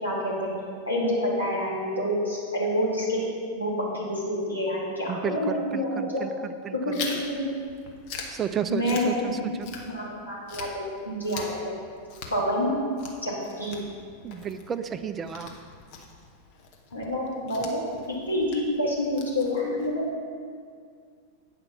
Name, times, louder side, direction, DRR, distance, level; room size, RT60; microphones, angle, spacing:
voice 1, 0.0-0.5 0.9-3.2 3.5-6.3 6.8-7.4 8.7-9.3 9.9-11.7 12.3-12.7 13.2-13.3 13.6-13.8 16.9-17.8 18.3-20.1, left 1 dB, 85° left, -7 dB, 2.4 m, -27 dB
voice 2, 5.1-7.0 8.3-9.4 14.2-15.5, right 8 dB, 25° right, 10 dB, 0.4 m, -32 dB
Chewing mastication, 6.9-10.2 10.5-19.9, left 4 dB, 45° left, 1.1 m, -42 dB
8.8 x 5.1 x 5.9 m, 2.2 s
figure-of-eight pair, 90°, 0 cm